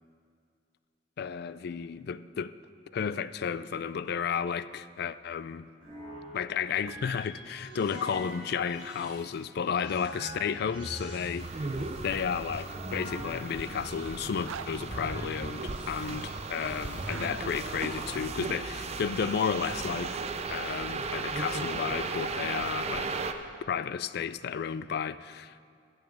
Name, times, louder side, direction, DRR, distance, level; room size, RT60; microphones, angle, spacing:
voice 1, 1.2-2.5 2.9-5.7 6.3-11.8 12.0-23.2 23.7-25.7, left 7 dB, 55° left, 0.3 m, -33 dB
sound 1, 5.8-18.2, equal, 30° left, 3.5 m, -43 dB
sound 2, 11.4-23.3, right 4 dB, 35° right, 0.5 m, -36 dB
Zipper (clothing), 14.3-14.7 16.9-17.3 19.5-20.3 22.2-23.3, right 7 dB, 90° right, 0.4 m, -44 dB
12.5 x 7.2 x 7.2 m
head